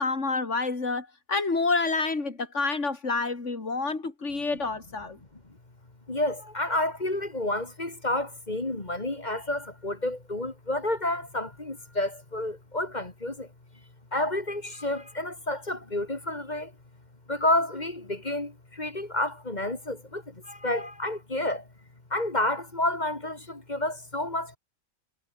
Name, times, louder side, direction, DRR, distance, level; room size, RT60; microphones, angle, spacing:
voice 1, 0.0-5.2, left 3 dB, 55° left, 3.6 m, -28 dB
voice 2, 6.1-13.5 14.1-16.7 17.3-21.7 22.1-24.6, left 1 dB, 30° left, 2.5 m, -30 dB
omnidirectional pair, 1.5 m